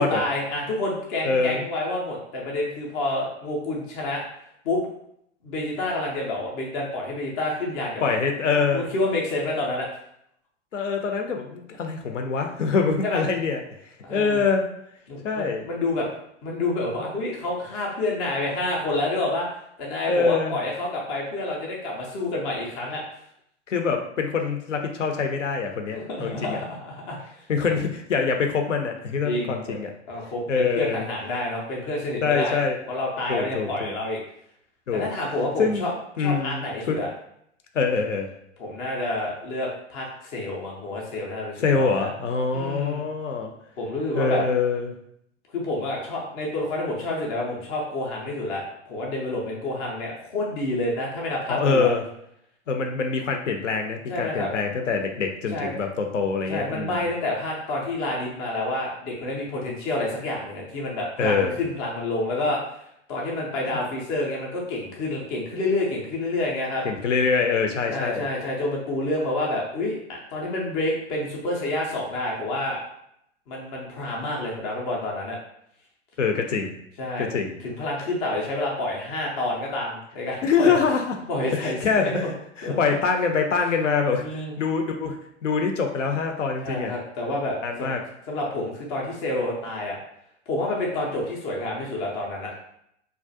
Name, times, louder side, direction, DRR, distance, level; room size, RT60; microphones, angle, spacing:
voice 1, 0.0-4.2 4.6-4.8 5.4-8.2 8.7-9.9 13.0-13.3 14.0-14.5 15.1-16.1 16.4-19.5 19.8-23.0 25.9-27.2 27.6-27.7 29.2-29.8 30.1-32.6 32.9-34.2 34.9-35.9 36.2-37.1 38.6-42.1 42.5-43.1 43.8-44.4 45.5-51.9 54.1-54.5 55.5-55.7 56.5-62.6 63.1-66.8 67.9-72.8 73.5-75.4 77.0-77.3 77.6-80.7 81.3-82.3 82.6-82.8 84.2-84.6 86.6-88.0 88.3-90.0 90.5-92.5, left 2 dB, 15° left, -3 dB, 0.3 m, -28 dB
voice 2, 1.2-1.6 8.0-8.9 10.7-13.6 14.1-14.6 15.2-15.6 20.1-20.6 23.7-26.6 27.5-29.9 30.5-31.1 32.2-32.8 33.3-33.9 34.9-35.1 35.6-35.9 36.2-37.0 37.7-38.3 41.6-43.5 44.1-44.9 51.5-52.0 52.7-57.1 61.2-61.6 66.8-68.3 76.2-76.7 77.2-77.6 80.4-81.2 81.5-82.3 82.6-85.2 85.4-86.9 87.6-88.0, left 5 dB, 80° left, 4 dB, 0.5 m, -24 dB
2.3 x 2.0 x 2.6 m, 0.74 s
figure-of-eight pair, 95°, 37 cm